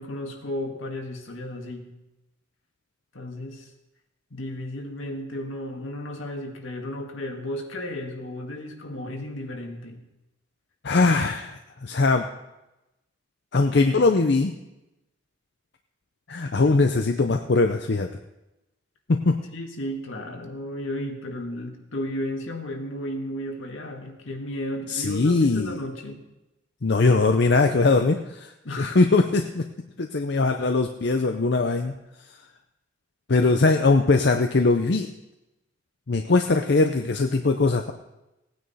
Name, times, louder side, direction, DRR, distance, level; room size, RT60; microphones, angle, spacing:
voice 1, 0.0-1.9 3.1-3.7 4.3-10.0 16.6-16.9 19.5-26.2 28.6-29.0 33.4-33.5, left 1 dB, 80° left, 2 dB, 1.9 m, -34 dB
voice 2, 10.8-12.2 13.5-14.5 16.3-18.1 19.1-19.4 24.9-25.8 26.8-28.5 28.8-29.6 30.0-31.9 33.3-35.1 36.1-37.9, left 3 dB, 55° left, 5 dB, 0.6 m, -21 dB
17.5 x 9.5 x 4.2 m, 0.95 s
head